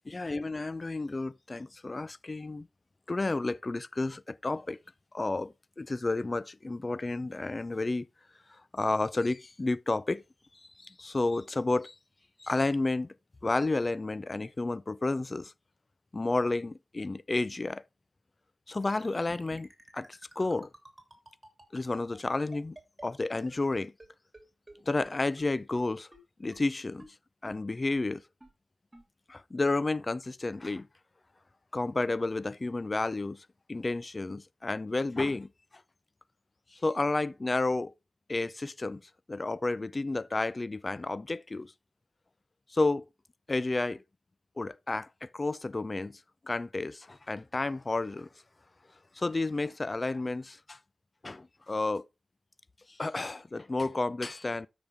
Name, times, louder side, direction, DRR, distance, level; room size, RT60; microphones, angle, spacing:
voice 1, 0.1-2.7 3.1-4.8 5.1-8.1 8.7-10.2 10.8-11.9 12.4-13.1 13.4-15.5 16.1-17.8 18.7-19.7 19.9-20.1 20.4-20.7 21.7-22.8 23.0-23.9 24.9-26.1 26.4-27.0 27.4-28.2 29.3-30.9 31.7-33.4 33.7-35.5 36.7-37.9 38.3-39.0 39.3-41.7 42.7-43.0 43.5-44.0 44.6-46.2 46.5-48.3 49.2-50.8 51.2-52.0 53.0-54.7, left 2 dB, 40° left, 0.4 m, -31 dB
sound 1, 18.8-24.1 24.3-24.4 24.7-24.8 25.0-25.1 25.4-25.5 25.7-25.8 26.1-26.2 26.5-26.6 27.0-27.1 27.5-27.6 27.9-28.0 28.4-28.5 28.9-29.0, right 2 dB, 25° right, 2.8 m, -51 dB
12.5 x 5.1 x 3.5 m
cardioid pair, 50°, 0 cm